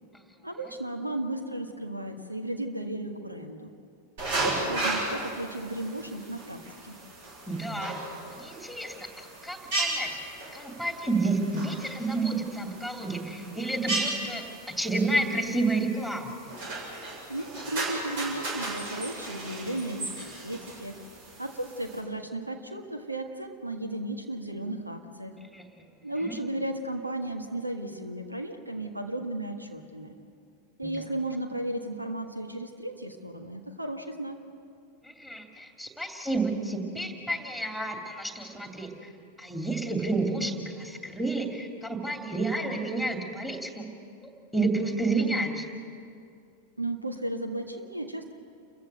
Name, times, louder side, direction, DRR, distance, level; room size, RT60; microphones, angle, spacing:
voice 1, 0.4-3.7 4.4-6.9 17.3-21.0 21.4-25.3 26.0-30.1 30.8-34.4 46.8-48.3, right 1 dB, 85° right, 5 dB, 1.6 m, -35 dB
sound 1, 4.2-22.0, right 2 dB, 50° right, 7.4 m, -36 dB
voice 2, 7.5-8.0 8.3-14.4 14.8-16.3 25.4-25.7 26.2-26.3 30.8-30.9 35.0-39.1 39.4-43.8 44.2-45.7, right 2 dB, ahead, 3 dB, 2.7 m, -30 dB
29.5 x 15.0 x 7.9 m, 2.4 s
figure-of-eight pair, 90°, 0 cm